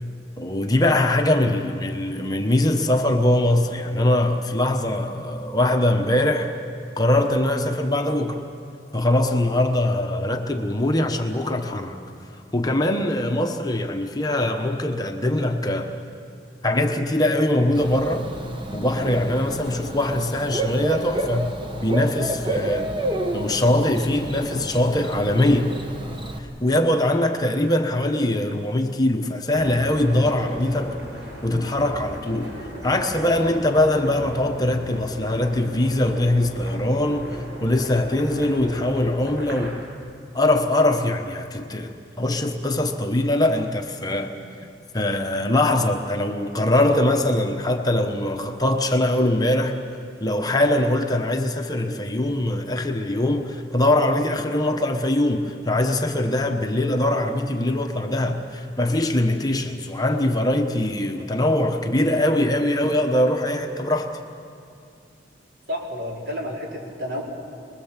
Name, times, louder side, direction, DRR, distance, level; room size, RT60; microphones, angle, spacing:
voice 1, 0.4-6.5 7.0-8.4 8.9-12.0 12.5-15.9 16.6-18.3 18.7-22.9 23.3-25.7 26.4-31.0 31.4-32.5 32.8-39.8 40.3-44.3 44.9-49.8 50.2-64.1, left 1 dB, 20° left, 1.1 m, -22 dB
Bird / Cricket, 17.7-26.4, right 1 dB, 25° right, 1.2 m, -30 dB
sound 1, 29.5-39.7, equal, 85° right, 7.5 m, -37 dB
voice 2, 65.7-67.2, left 1 dB, 70° right, 4.8 m, -30 dB
25.5 x 21.5 x 7.4 m
head